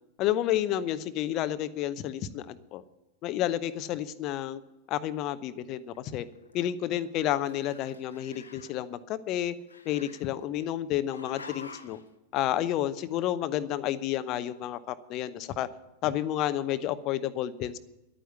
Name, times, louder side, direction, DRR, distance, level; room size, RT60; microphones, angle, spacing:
voice 1, 0.2-2.8 3.2-4.6 4.9-6.3 6.5-9.5 9.8-12.0 12.3-15.7 16.0-17.8, left 12 dB, 40° left, 14 dB, 0.8 m, -30 dB
Growling, 5.9-7.1 7.4-8.8 9.7-10.7 11.1-12.1, left 4 dB, 75° left, 1.0 m, -49 dB
11.5 x 9.3 x 8.2 m, 0.99 s
figure-of-eight pair, 90°, 0 cm